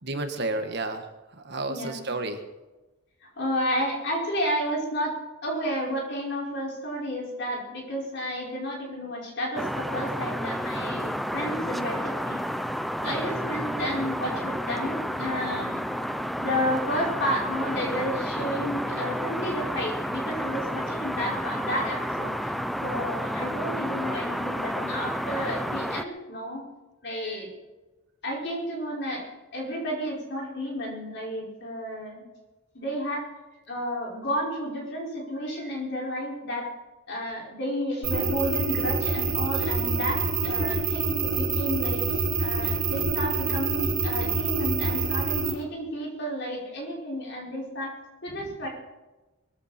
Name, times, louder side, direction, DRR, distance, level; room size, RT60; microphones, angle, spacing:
voice 1, 0.0-2.4 48.4-48.5, right 2 dB, 50° right, 6 dB, 1.5 m, -32 dB
voice 2, 1.7-2.1 3.4-5.1 5.4-12.4 13.0-15.8 16.4-22.5 22.8-26.6 27.0-27.5 28.2-32.3 32.7-33.3 33.7-36.7 37.1-42.1 42.4-47.9 48.2-48.7, equal, 55° left, -3 dB, 5.4 m, -31 dB
sound 1, 9.6-26.0, equal, ahead, 0.5 m, -31 dB
sound 2, 38.0-45.5, right 4 dB, 70° right, 4.6 m, -26 dB
22.0 x 14.5 x 4.4 m, 1.1 s
head